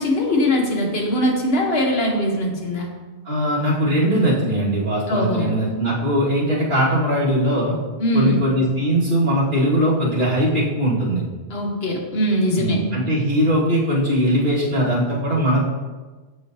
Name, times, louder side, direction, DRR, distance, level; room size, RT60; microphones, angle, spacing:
voice 1, 0.0-2.9 5.1-5.5 8.0-8.4 11.5-12.8, equal, 60° left, 1 dB, 1.2 m, -21 dB
voice 2, 3.2-7.8 8.1-11.2 12.6-15.6, equal, 45° right, -9 dB, 2.0 m, -20 dB
7.5 x 4.9 x 2.6 m, 1.3 s
omnidirectional pair, 1.2 m